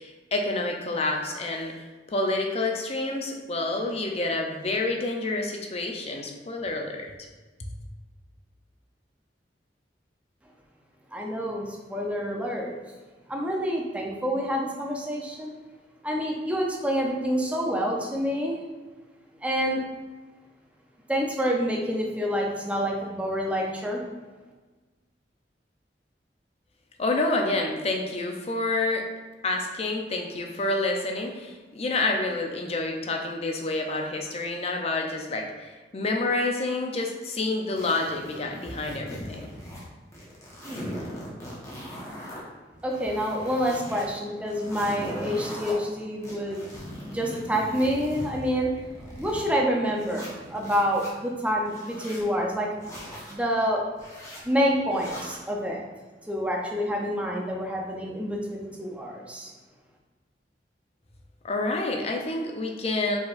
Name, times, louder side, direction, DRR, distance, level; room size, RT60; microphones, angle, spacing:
voice 1, 0.0-1.7 2.1-7.1 27.0-29.1 29.4-39.5 61.4-63.2, left 2 dB, 35° left, 2 dB, 0.5 m, -28 dB
voice 2, 11.1-12.7 13.3-15.5 16.0-18.6 19.4-19.9 21.1-24.0 42.7-46.6 47.0-48.7 49.2-52.7 53.3-53.8 54.4-55.8 56.3-59.5, equal, 10° right, -1 dB, 0.6 m, -27 dB
sound 1, 37.8-39.9 40.1-42.4 42.8-44.0 44.4-45.7 46.2-49.5 50.0-51.1 51.6-52.2 52.8-53.4 53.9-54.4 54.9-55.4, equal, 15° left, 1.0 m, -40 dB
4.6 x 4.2 x 2.5 m, 1.3 s
head